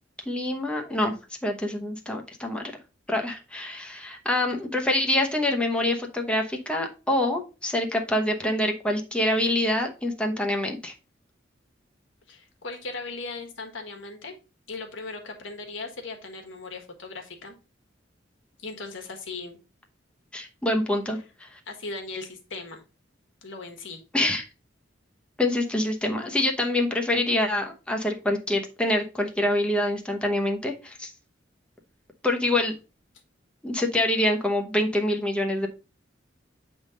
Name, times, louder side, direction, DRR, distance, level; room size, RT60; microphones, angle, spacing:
voice 1, 0.3-1.1 1.4-2.7 3.1-10.9 20.3-21.6 24.1-24.4 25.4-31.1 32.2-32.7 33.6-35.7, left 1 dB, 5° left, 1 dB, 0.9 m, -26 dB
voice 2, 12.3-14.4 14.7-17.6 18.6-19.6 21.7-22.8 23.4-24.0, left 3 dB, 90° left, 4 dB, 1.5 m, -38 dB
7.8 x 3.6 x 3.8 m, 0.31 s
head